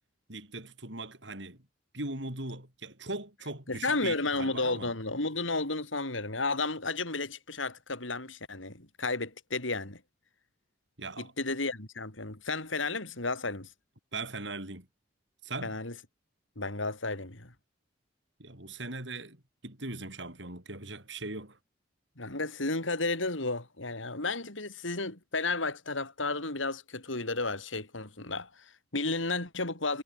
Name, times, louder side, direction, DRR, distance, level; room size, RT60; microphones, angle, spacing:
voice 1, 0.3-1.6 1.9-4.9 11.0-11.3 14.1-14.9 15.4-15.8 18.4-21.6, right 2 dB, 70° right, 7.0 m, -40 dB
voice 2, 3.7-10.0 11.2-13.7 15.6-15.9 16.5-17.5 22.2-30.0, left 3 dB, 90° left, 5.1 m, -33 dB
head